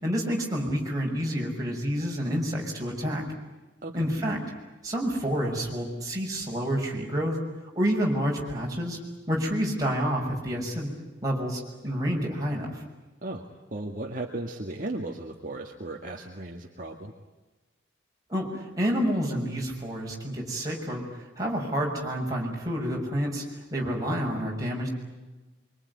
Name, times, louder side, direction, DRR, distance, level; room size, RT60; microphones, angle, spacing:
voice 1, 0.0-3.2 3.9-4.4 4.8-7.4 7.7-9.0 9.3-10.9 11.2-12.8 18.3-24.9, equal, 20° right, -2 dB, 6.6 m, -29 dB
voice 2, 13.2-17.1, right 2 dB, 45° right, 1 dB, 2.0 m, -36 dB
25.0 x 24.5 x 9.7 m, 1.2 s
head